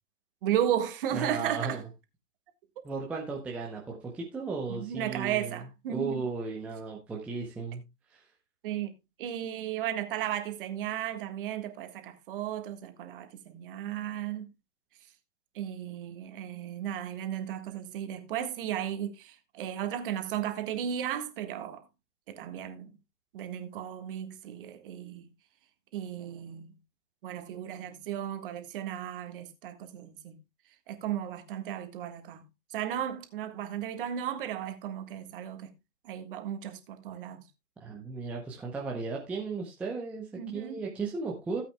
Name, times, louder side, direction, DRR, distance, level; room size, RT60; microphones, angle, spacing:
voice 1, 0.4-1.8 4.7-6.3 8.6-8.9 9.2-14.5 15.5-21.8 22.3-22.9 23.3-25.3 25.9-26.7 27.2-30.4 30.9-35.7 36.0-37.4 40.4-40.8, right 10 dB, 35° right, 1.6 m, -35 dB
voice 2, 1.1-1.8 2.8-5.6 5.9-7.8 8.1-8.2 37.8-41.6, right 4 dB, 5° right, 0.7 m, -35 dB
16.5 x 8.4 x 2.2 m
figure-of-eight pair, 135°, 46 cm